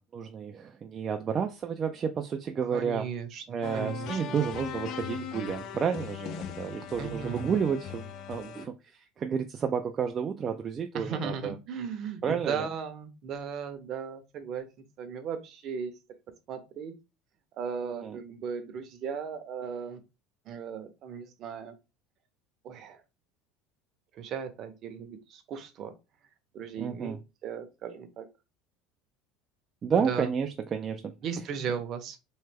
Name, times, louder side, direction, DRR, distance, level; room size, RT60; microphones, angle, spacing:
voice 1, 0.0-3.1 3.5-11.5 12.2-12.7 18.0-18.2 26.8-27.2 29.8-31.1, right 7 dB, 30° right, 0.3 m, -31 dB
voice 2, 2.7-4.4 7.0-7.6 10.9-14.7 15.0-15.9 16.5-16.9 17.6-20.0 20.5-21.7 22.6-23.0 24.1-25.9 26.5-28.3 30.0-30.3 31.2-32.2, right 6 dB, 45° right, 0.7 m, -36 dB
sound 1, 3.6-8.7, left 8 dB, 55° left, 0.3 m, -39 dB
3.1 x 2.1 x 3.4 m
supercardioid pair, 130°, 0 cm